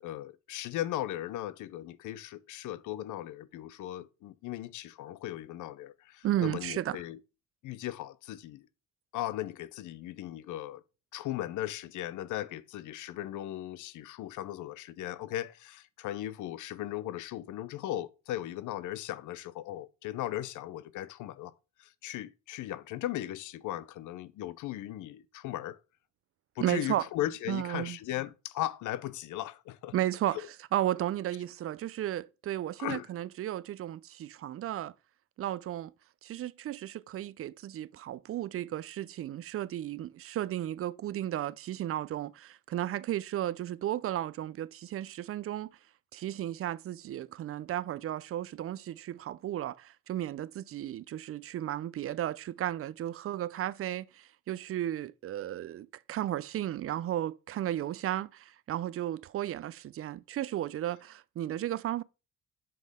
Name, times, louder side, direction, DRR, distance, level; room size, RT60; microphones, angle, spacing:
voice 1, 0.0-7.2 7.6-8.7 9.1-10.8 11.1-21.5 21.8-25.8 26.6-29.9 30.3-30.5 32.8-33.1, left 13 dB, 80° left, 0.6 m, -37 dB
voice 2, 6.2-7.0 26.6-27.0 27.5-28.0 29.9-30.4 30.7-34.9 35.4-35.9 36.2-45.7 46.1-62.0, right 12 dB, 50° right, 0.4 m, -34 dB
7.6 x 5.4 x 3.5 m
cardioid pair, 90°, 30 cm